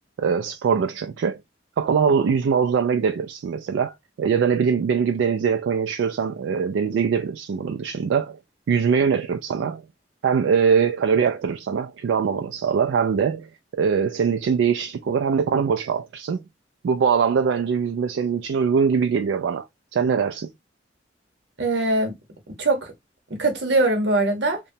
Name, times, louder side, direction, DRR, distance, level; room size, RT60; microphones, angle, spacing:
voice 1, 0.2-1.4 1.8-8.4 8.7-9.8 10.2-13.5 13.8-16.4 16.8-19.6 19.9-20.5, right 6 dB, 80° right, 0.3 m, -22 dB
voice 2, 21.6-22.2 22.6-22.9 23.3-24.6, right 2 dB, 65° right, 1.0 m, -22 dB
2.9 x 2.2 x 2.6 m
head